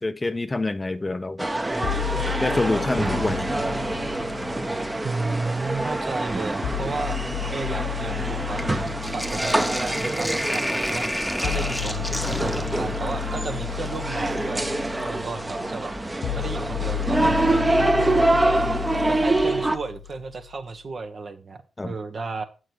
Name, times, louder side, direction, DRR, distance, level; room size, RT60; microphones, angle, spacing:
voice 1, 0.0-1.5 2.4-3.8 4.4-4.5 21.8-22.0, left 2 dB, 25° left, 0.6 m, -27 dB
sound 1, 1.4-19.8, right 2 dB, 20° right, 0.9 m, -26 dB
sound 2, 1.8-5.8 6.6-20.7, left 11 dB, 80° left, 0.5 m, -33 dB
Sink (filling or washing), 1.8-3.8 4.2-5.0 5.8-5.9 6.2-15.3 17.0-17.1 18.9-19.4 19.7-19.8 20.1-20.2, equal, ahead, 1.0 m, -33 dB
voice 2, 5.0-11.0 11.4-14.8 15.1-18.6 19.1-22.4, right 4 dB, 55° right, 1.2 m, -33 dB
8.0 x 6.3 x 4.6 m
supercardioid pair, 45°, 0 cm